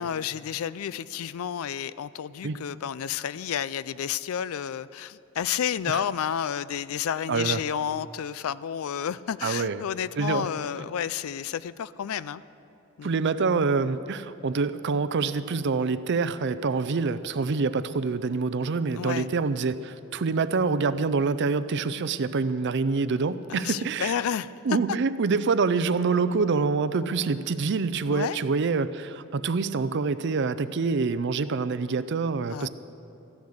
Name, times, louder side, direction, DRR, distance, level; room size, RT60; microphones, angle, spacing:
voice 1, 0.0-12.4 13.0-13.2 18.9-19.3 23.5-24.5 28.1-28.4 32.5-32.7, left 9 dB, 80° left, 18 dB, 0.4 m, -31 dB
voice 2, 7.3-7.6 9.4-9.8 10.2-10.5 13.0-24.2 24.6-32.7, right 4 dB, 55° right, 14 dB, 0.5 m, -26 dB
14.0 x 10.5 x 6.5 m, 2.9 s
head